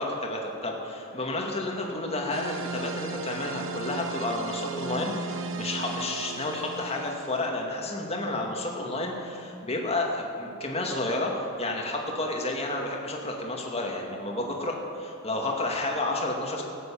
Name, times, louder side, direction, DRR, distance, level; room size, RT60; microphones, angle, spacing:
voice 1, 0.0-16.6, left 2 dB, 30° left, 0 dB, 2.1 m, -31 dB
sound 1, 2.3-7.5, right 4 dB, 65° right, 0.9 m, -36 dB
16.5 x 8.5 x 8.6 m, 2.6 s
head